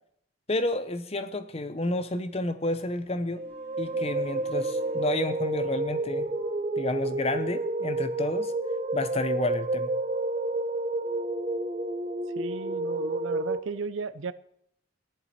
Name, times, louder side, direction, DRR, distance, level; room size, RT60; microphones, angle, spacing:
voice 1, 0.5-3.4 3.8-6.3 6.8-8.5 8.9-9.9, left 2 dB, 30° left, 0.8 m, -30 dB
sound 1, 2.7-6.7, left 2 dB, 10° left, 3.7 m, -51 dB
sound 2, 3.3-13.6, right 2 dB, 30° right, 0.6 m, -30 dB
voice 2, 12.4-14.3, right 4 dB, 75° right, 0.6 m, -34 dB
15.5 x 11.0 x 4.3 m
head